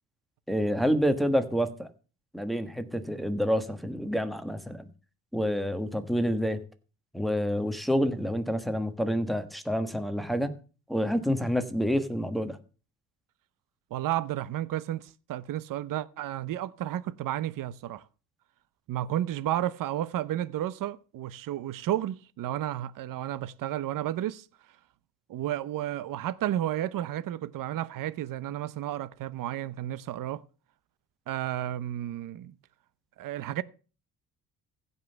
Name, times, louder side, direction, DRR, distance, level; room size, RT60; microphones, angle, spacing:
voice 1, 0.5-1.9 2.3-4.8 5.3-6.6 7.1-10.5 10.9-12.6, equal, ahead, 1.4 m, -28 dB
voice 2, 13.9-18.0 18.9-24.5 25.3-30.4 31.3-32.5 33.2-33.6, right 13 dB, 60° right, 0.8 m, -32 dB
15.5 x 5.6 x 6.7 m
cardioid pair, 115°, 36 cm